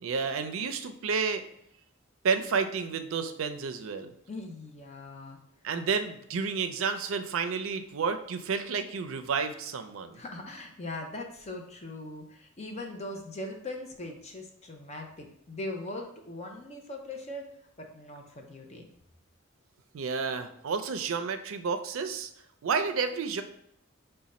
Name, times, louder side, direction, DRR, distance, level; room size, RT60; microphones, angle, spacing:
voice 1, 0.0-1.4 2.2-4.1 5.6-10.2 19.9-22.3 22.6-23.4, right 5 dB, 80° right, 9 dB, 0.4 m, -30 dB
voice 2, 4.3-5.4 10.1-17.5 17.8-18.8, left 2 dB, 35° left, 2 dB, 0.5 m, -40 dB
5.0 x 2.2 x 4.1 m, 0.73 s
head